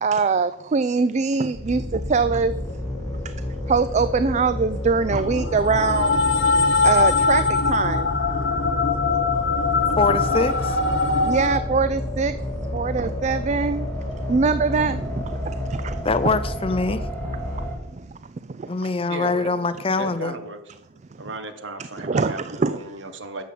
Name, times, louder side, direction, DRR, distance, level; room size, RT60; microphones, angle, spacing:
voice 1, 0.0-2.5 3.2-3.3 3.7-6.2 6.8-8.1 11.2-12.4 12.7-13.9 14.3-16.3 17.9-18.1 18.5-18.7 22.0-22.8, right 4 dB, 35° right, 13 dB, 0.4 m, -23 dB
sound 1, 1.5-17.7, left 1 dB, 10° left, 3.6 m, -30 dB
sound 2, 5.1-11.6, left 4 dB, 70° left, 1.1 m, -22 dB
voice 2, 10.0-10.8 16.0-17.0 18.7-20.3, left 3 dB, 30° left, 13 dB, 0.6 m, -23 dB
voice 3, 19.1-19.5 19.9-20.6 21.2-23.4, right 2 dB, 70° right, 9 dB, 1.4 m, -35 dB
10.5 x 7.3 x 7.6 m, 0.90 s
head